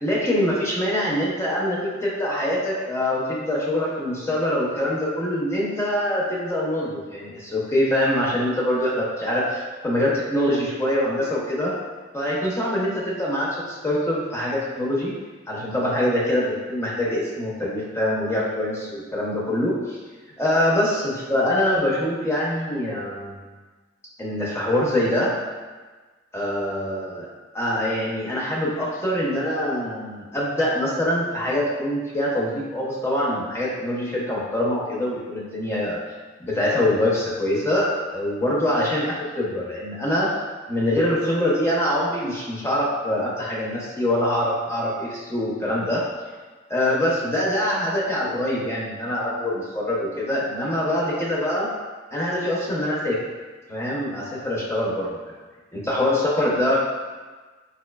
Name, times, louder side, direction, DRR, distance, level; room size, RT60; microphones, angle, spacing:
voice 1, 0.0-11.7 12.1-15.1 15.5-20.0 20.4-23.4 24.2-25.3 26.3-27.3 27.5-36.0 36.4-40.3 40.7-46.0 46.7-51.7 52.1-53.2 53.7-55.2 55.7-56.8, left 1 dB, 15° left, -5 dB, 0.5 m, -24 dB
3.9 x 2.7 x 2.2 m, 1.3 s
head